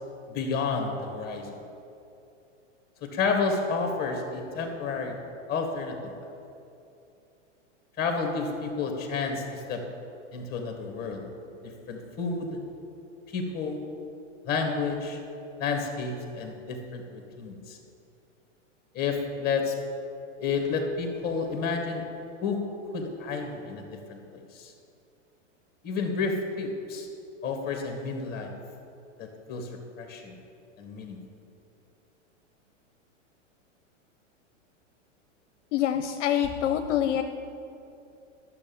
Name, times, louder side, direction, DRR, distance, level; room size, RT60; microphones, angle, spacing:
voice 1, 0.3-1.5 3.1-5.2 5.5-6.1 8.0-9.8 10.3-11.3 11.6-12.6 13.3-13.8 14.5-15.2 15.6-17.8 18.9-19.8 20.4-22.0 22.4-22.6 22.9-23.8 24.1-24.2 24.5-24.7 25.8-27.1 27.4-28.5 29.2-29.7 30.0-30.3 30.8-31.2, left 4 dB, 25° left, 3 dB, 2.0 m, -30 dB
voice 2, 35.7-37.2, left 10 dB, 70° left, 7 dB, 0.7 m, -25 dB
12.0 x 7.0 x 7.2 m, 2.7 s
hypercardioid pair, 130°, 37 cm